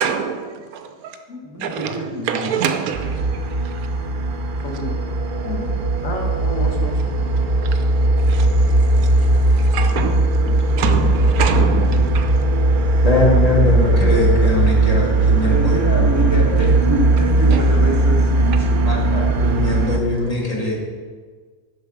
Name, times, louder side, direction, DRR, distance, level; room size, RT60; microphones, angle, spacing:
voice 1, 0.0-1.2 1.6-3.8 7.5-12.4 17.5-17.8, right 7 dB, 80° right, 7 dB, 1.1 m, -26 dB
voice 2, 1.4-2.5 15.4-18.7 19.0-19.1, equal, 15° right, -1 dB, 0.9 m, -26 dB
sound 1, 2.9-20.0, right 2 dB, 55° right, 0.6 m, -18 dB
voice 3, 4.6-4.9 5.4-7.3 10.4-10.6, left 2 dB, 65° left, 1 dB, 1.5 m, -31 dB
voice 4, 13.0-16.1 16.5-16.7 18.8-20.8, left 2 dB, 25° left, -3 dB, 1.6 m, -21 dB
7.0 x 5.4 x 5.9 m, 1.5 s
omnidirectional pair, 1.5 m